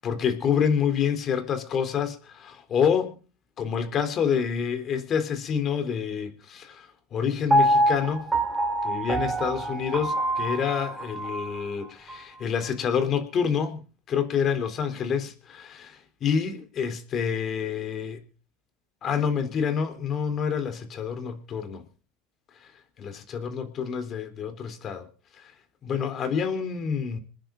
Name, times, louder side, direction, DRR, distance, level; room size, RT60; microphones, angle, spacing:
voice 1, 0.0-3.1 3.6-8.3 8.8-13.8 14.1-18.2 19.0-21.8 23.0-25.1 25.4-25.5 25.8-27.2, left 7 dB, 35° left, 3.5 m, -27 dB
Piano, 7.5-11.6 12.1-12.2, right 1 dB, 15° right, 3.2 m, -25 dB
27.0 x 10.5 x 3.9 m
supercardioid pair, 130°, 0 cm